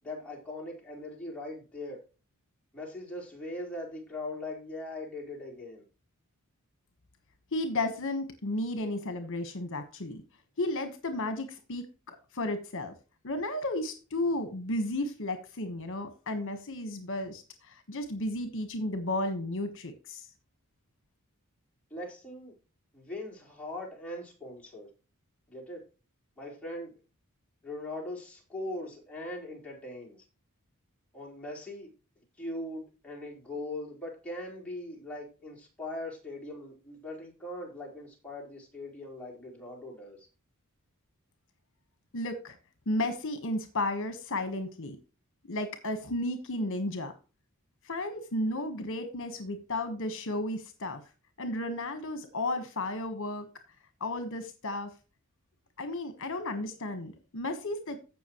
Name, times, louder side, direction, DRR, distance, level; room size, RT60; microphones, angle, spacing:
voice 1, 0.0-2.0 2.7-5.8 21.9-22.5 22.9-24.9 25.5-25.8 26.4-26.9 27.6-30.2 31.1-31.9 32.4-40.3, left 1 dB, 5° left, 4.2 m, -40 dB
voice 2, 7.5-10.2 10.6-12.9 13.2-20.3 42.1-42.6 42.9-45.0 45.5-47.1 47.8-51.0 51.4-53.5 54.0-54.9 55.8-58.0, left 1 dB, 60° left, 1.4 m, -33 dB
15.5 x 6.0 x 3.1 m
head